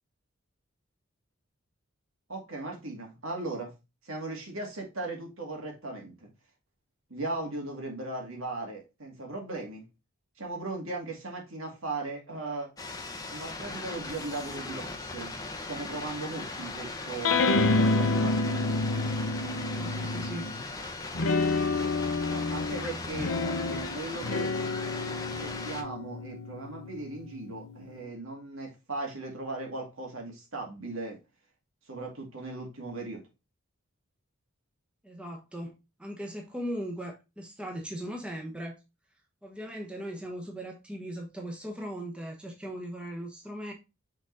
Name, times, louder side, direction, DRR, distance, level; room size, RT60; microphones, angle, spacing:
voice 1, 2.3-3.7 4.0-6.3 7.1-9.9 10.4-12.7 13.3-15.3 15.7-18.4 22.3-24.5 25.4-31.2 31.9-33.2, right 2 dB, 75° right, 2.3 m, -38 dB
sound 1, 12.8-25.8, left 3 dB, 15° left, 0.8 m, -39 dB
sound 2, 17.2-20.6 21.1-27.9, left 3 dB, 75° left, 0.8 m, -29 dB
voice 2, 19.5-20.5 35.0-35.7 36.0-38.8 39.4-43.7, equal, 5° right, 1.1 m, -38 dB
6.0 x 3.9 x 3.9 m
head